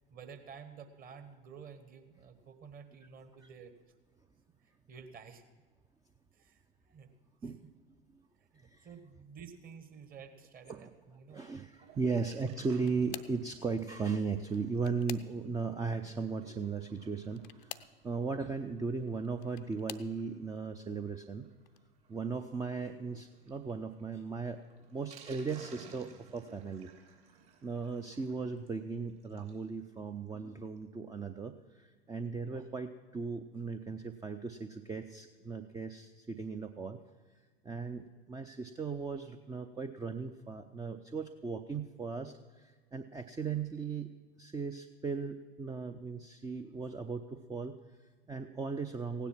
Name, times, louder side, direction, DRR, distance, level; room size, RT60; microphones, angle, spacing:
voice 1, 0.1-3.7 4.6-5.4 6.3-6.6 6.9-7.1 7.4-7.5 8.5-11.4 12.0-12.3, right 6 dB, 30° right, 8 dB, 1.5 m, -51 dB
voice 2, 11.3-21.5 22.1-24.6 24.9-26.9 27.6-37.0 37.6-44.1 44.4-49.3, right 5 dB, 10° right, 7 dB, 0.5 m, -37 dB
Sink (filling or washing), 11.6-29.7 30.0-30.1 30.3-30.4 30.8-30.9, right 7 dB, 50° right, 3.3 m, -60 dB
sound 1, 12.4-13.5 14.4-15.7 17.3-18.0 19.1-20.1 20.9-21.2 21.7-21.8 23.1-23.2, left 14 dB, 60° left, 0.6 m, -48 dB
16.0 x 10.0 x 6.0 m, 1.5 s
figure-of-eight pair, 85°, 29 cm